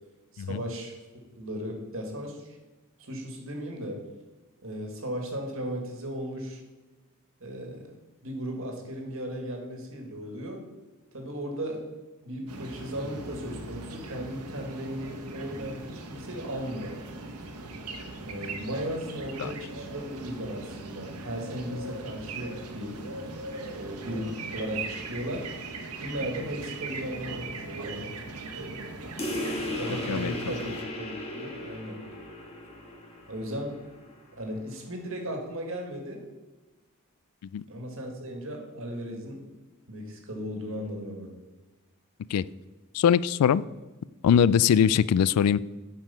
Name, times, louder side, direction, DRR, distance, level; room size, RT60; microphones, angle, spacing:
voice 1, 0.3-1.0 1.4-2.6 3.0-4.0 4.6-6.6 7.4-7.9 8.2-10.6 11.1-11.8 12.2-17.1 18.3-23.0 23.7-25.5 26.0-28.2 28.5-28.8 29.7-32.0 33.3-33.8 34.4-36.2 37.7-39.4 39.9-41.3 44.6-44.9, equal, 60° right, 2 dB, 1.8 m, -36 dB
sound 1, 12.5-30.8, right 3 dB, 90° right, 1.1 m, -39 dB
sound 2, 29.2-34.2, left 1 dB, 30° left, 1.4 m, -36 dB
voice 2, 42.9-43.6 44.2-45.6, left 8 dB, 90° left, 18 dB, 0.3 m, -21 dB
8.9 x 5.3 x 5.6 m, 1.2 s
head